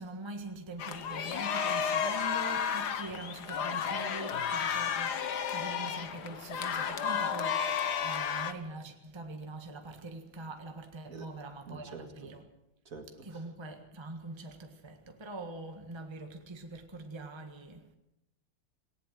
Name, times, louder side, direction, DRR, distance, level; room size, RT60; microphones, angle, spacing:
voice 1, 0.0-12.5 13.2-18.0, right 2 dB, 15° right, 1.4 m, -43 dB
sound 1, 0.8-8.5, left 7 dB, 60° left, 1.7 m, -32 dB
voice 2, 11.7-12.1 12.9-13.4, right 4 dB, 45° right, 2.3 m, -46 dB
19.0 x 18.5 x 7.6 m
omnidirectional pair, 2.1 m